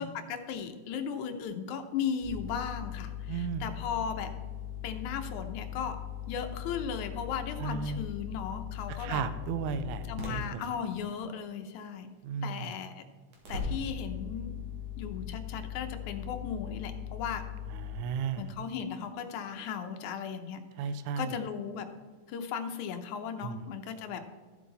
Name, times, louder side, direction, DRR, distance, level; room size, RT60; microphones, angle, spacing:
voice 1, 0.0-4.3 4.8-6.0 6.3-9.2 10.1-12.1 12.4-13.0 13.5-14.5 15.0-17.4 18.4-20.6 21.2-21.9 22.3-24.2, left 7 dB, 75° left, 7 dB, 2.1 m, -36 dB
sound 1, 2.2-10.4 13.3-18.0, left 8 dB, 60° right, 3.1 m, -39 dB
voice 2, 3.3-3.7 7.6-8.0 8.9-10.6 12.2-12.7 17.7-18.5 20.8-21.3 23.4-23.6, right 6 dB, 80° right, 11 dB, 1.9 m, -34 dB
13.5 x 7.5 x 4.0 m, 1.4 s
omnidirectional pair, 3.7 m